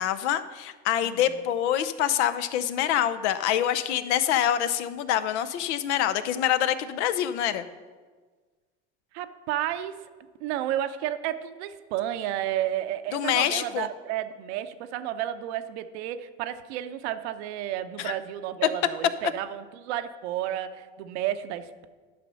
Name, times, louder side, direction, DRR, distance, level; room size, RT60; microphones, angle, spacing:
voice 1, 0.0-7.7 13.1-13.9 18.0-18.2 18.6-18.7, left 11 dB, 80° left, 12 dB, 0.7 m, -26 dB
voice 2, 1.0-1.3 9.1-9.9 10.4-21.9, right 12 dB, 75° right, 10 dB, 0.8 m, -32 dB
10.5 x 5.8 x 5.4 m, 1.4 s
hypercardioid pair, 80°, 34 cm